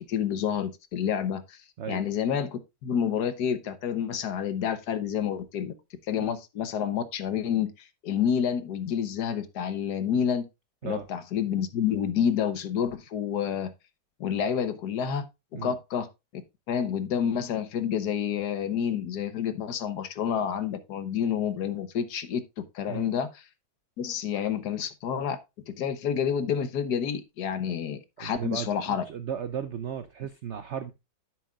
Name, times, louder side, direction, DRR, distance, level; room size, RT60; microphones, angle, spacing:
voice 1, 0.0-1.6 1.9-5.7 6.1-7.7 8.0-10.5 10.8-13.7 14.2-15.3 15.5-16.1 16.7-23.3 24.0-25.4 25.7-29.0, left 8 dB, 70° left, 1.4 m, -29 dB
voice 2, 28.2-30.9, right 8 dB, 70° right, 0.6 m, -35 dB
10.5 x 7.4 x 2.4 m
omnidirectional pair, 1.9 m